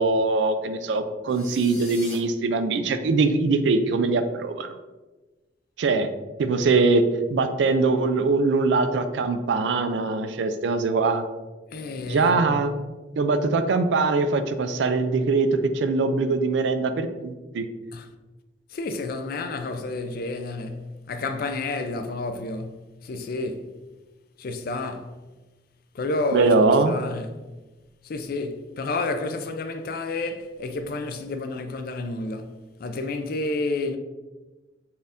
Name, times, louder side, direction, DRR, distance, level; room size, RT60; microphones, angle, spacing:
voice 1, 0.0-4.7 5.8-6.1 6.4-7.0 7.3-11.2 12.1-12.7 13.2-17.7 26.3-26.9, right 3 dB, 75° right, 0.3 m, -22 dB
sound 1, 1.3-2.2, left 2 dB, 5° left, 0.8 m, -41 dB
voice 2, 11.7-12.6 17.9-18.1 18.7-23.7 24.4-25.2 25.9-27.4 28.0-32.5 32.8-34.0, left 2 dB, 55° left, 0.4 m, -30 dB
4.3 x 2.5 x 3.5 m
head